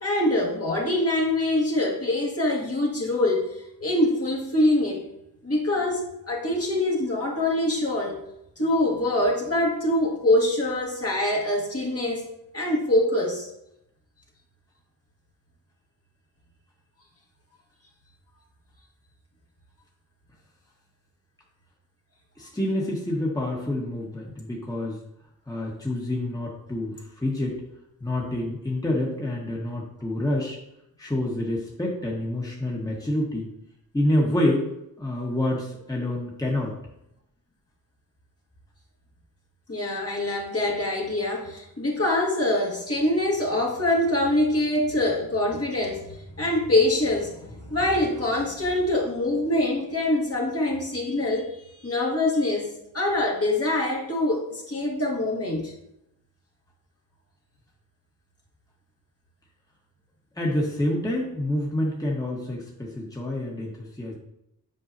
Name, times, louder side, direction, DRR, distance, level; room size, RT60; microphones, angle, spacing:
voice 1, 0.0-5.0 5.4-8.2 8.6-12.3 12.5-13.5 39.7-52.7 52.9-55.7, left 1 dB, 40° left, -3 dB, 1.8 m, -24 dB
voice 2, 22.4-25.0 25.5-27.6 28.0-30.6 31.0-33.5 33.9-34.7 35.0-36.8 60.4-64.1, left 1 dB, 10° left, -3 dB, 1.4 m, -27 dB
7.9 x 4.7 x 2.8 m, 0.80 s
cardioid pair, 55°, 38 cm